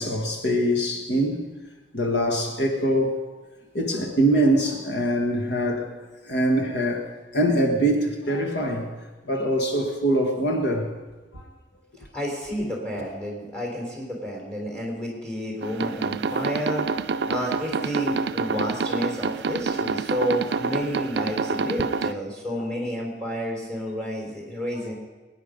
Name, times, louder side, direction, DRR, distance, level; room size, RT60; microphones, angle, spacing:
voice 1, 0.0-1.5 1.9-3.2 3.7-6.0 6.2-8.9 9.2-10.9 11.3-11.4 22.6-22.7 24.7-24.9, right 1 dB, 65° left, 2 dB, 1.6 m, -23 dB
voice 2, 12.0-16.9 17.3-24.9, equal, 5° left, -2 dB, 3.9 m, -30 dB
sound 1, 15.6-22.1, right 4 dB, 65° right, 0.4 m, -27 dB
22.0 x 9.7 x 5.2 m, 1.2 s
head